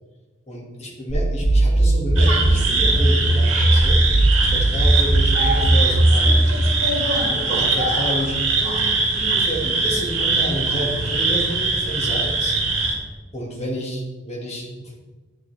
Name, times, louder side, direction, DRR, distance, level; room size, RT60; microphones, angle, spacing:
voice 1, 0.5-4.0 4.5-6.5 7.2-12.6 13.3-15.0, equal, 30° left, -2 dB, 1.8 m, -30 dB
sound 1, 1.1-6.6, right 1 dB, 10° left, 2.9 m, -17 dB
sound 2, 2.2-12.9, right 3 dB, 65° right, 2.4 m, -22 dB
9.7 x 7.9 x 3.3 m, 1.3 s
head